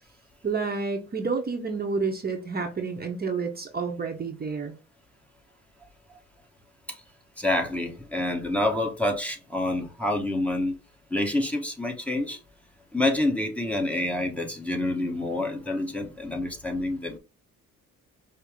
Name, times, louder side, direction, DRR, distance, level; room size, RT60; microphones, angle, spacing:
voice 1, 0.4-4.7, right 4 dB, 30° right, 0.8 m, -29 dB
voice 2, 7.4-10.7 11.1-12.4 12.9-17.2, left 1 dB, 5° left, 1.1 m, -27 dB
5.3 x 2.1 x 3.4 m
cardioid pair, 90°, 30 cm